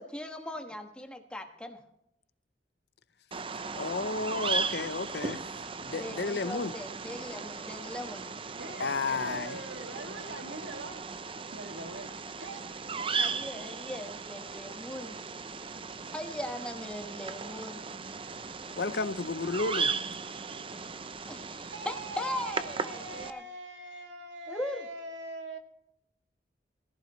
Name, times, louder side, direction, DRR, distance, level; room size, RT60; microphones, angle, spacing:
voice 1, 0.0-1.8 5.9-8.3 13.2-15.2 16.1-17.8 21.3-23.4 24.5-24.9, left 1 dB, 5° left, 1.3 m, -39 dB
Bird vocalization bird call bird song, 3.3-23.3, right 5 dB, 30° right, 0.6 m, -37 dB
voice 2, 3.7-5.4 5.8-6.7 8.8-9.6 18.8-19.9, left 3 dB, 65° left, 0.7 m, -32 dB
voice 3, 8.6-12.7 21.7-25.6, right 2 dB, 90° right, 2.2 m, -43 dB
18.5 x 14.5 x 3.1 m
head